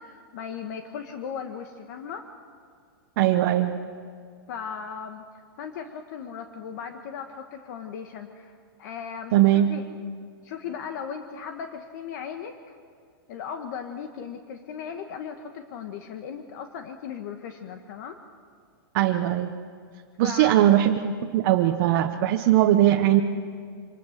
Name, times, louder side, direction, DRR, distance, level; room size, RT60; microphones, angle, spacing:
voice 1, 0.0-2.3 4.5-5.2 5.6-9.8 10.4-12.8 13.3-18.2 20.2-20.7, left 7 dB, 50° left, 6 dB, 1.3 m, -37 dB
voice 2, 3.2-3.8 9.3-9.7 18.9-19.6 20.2-23.2, right 12 dB, 40° right, 3 dB, 0.9 m, -20 dB
25.0 x 20.0 x 6.6 m, 2.2 s
supercardioid pair, 155°, 12 cm